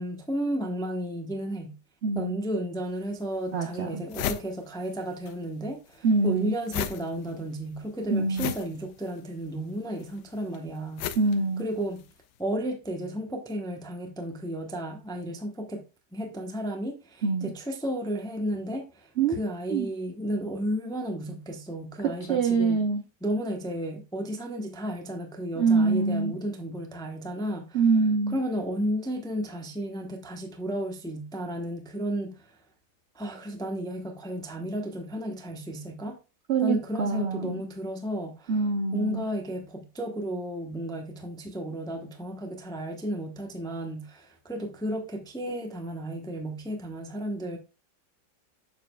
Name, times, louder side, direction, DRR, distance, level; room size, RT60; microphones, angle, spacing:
voice 1, 0.0-1.7 2.1-11.1 11.6-12.0 12.4-15.8 16.1-22.8 23.2-27.8 28.3-32.6 33.1-36.2 36.6-38.6 38.9-47.6, equal, 5° left, 0.5 m, -33 dB
voice 2, 2.0-2.4 3.5-4.0 6.0-6.5 8.1-8.5 11.2-11.6 17.2-17.5 19.2-19.4 19.7-19.9 22.0-23.0 25.6-26.3 27.7-28.4 36.5-37.6 38.5-39.2, right 4 dB, 60° right, 0.7 m, -25 dB
sound 1, 2.9-3.0 3.5-3.6 3.8-5.4 5.6-12.2, left 10 dB, 80° left, 1.2 m, -36 dB
7.2 x 6.9 x 2.3 m
omnidirectional pair, 1.9 m